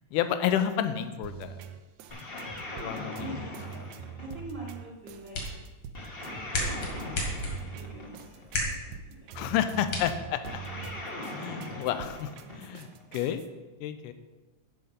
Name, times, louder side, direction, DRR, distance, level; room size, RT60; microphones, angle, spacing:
voice 1, 0.1-1.6 2.8-3.5 9.3-10.6 11.3-13.4 13.8-14.1, left 10 dB, 85° left, 10 dB, 2.2 m, -30 dB
sound 1, 1.2-13.5, right 8 dB, 80° right, 1.8 m, -45 dB
sound 2, 2.1-4.7 5.9-8.5 10.4-13.0, left 1 dB, 45° left, 0.7 m, -40 dB
voice 2, 3.2-3.9 4.2-5.4 7.7-9.9, right 1 dB, 55° right, -3 dB, 1.3 m, -44 dB
sound 3, 4.9-10.9, left 1 dB, 70° left, 3.4 m, -36 dB
12.0 x 5.1 x 5.5 m, 1.2 s
omnidirectional pair, 3.7 m